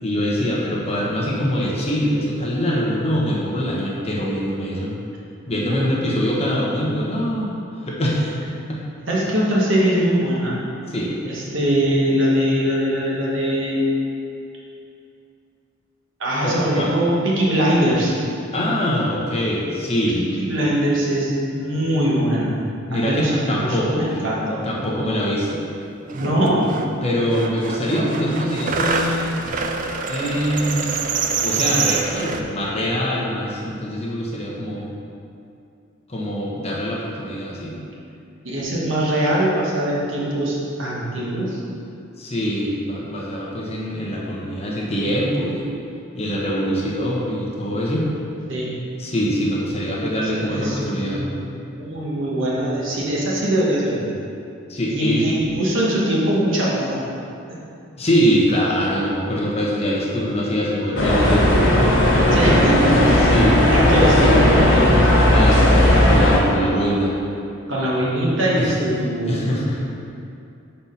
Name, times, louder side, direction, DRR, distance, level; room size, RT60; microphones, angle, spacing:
voice 1, 0.0-4.9 5.5-8.4 8.7-8.8 10.9-11.1 16.4-16.9 18.5-20.4 22.9-24.0 24.6-25.6 27.0-29.4 30.1-30.9 31.4-34.9 36.1-37.8 42.2-45.6 46.1-48.1 49.0-51.3 54.7-55.3 58.0-61.6 63.1-63.8 65.3-67.1 68.5-68.9 69.2-69.8, equal, 30° left, -4 dB, 1.0 m, -23 dB
voice 2, 9.1-10.6 11.2-13.8 16.2-18.1 20.1-22.6 22.9-24.6 26.1-26.7 38.4-41.6 48.5-48.7 50.2-51.5 51.8-54.1 54.9-57.0 62.3-63.0 63.5-65.0 67.7-69.5, equal, 65° right, -5 dB, 1.5 m, -21 dB
sound 1, 25.8-25.9 26.1-26.9 27.2-32.4, right 5 dB, 40° right, 0.4 m, -25 dB
sound 2, 61.0-66.4, left 1 dB, 70° left, 1.4 m, -15 dB
5.8 x 4.4 x 5.6 m, 2.6 s
head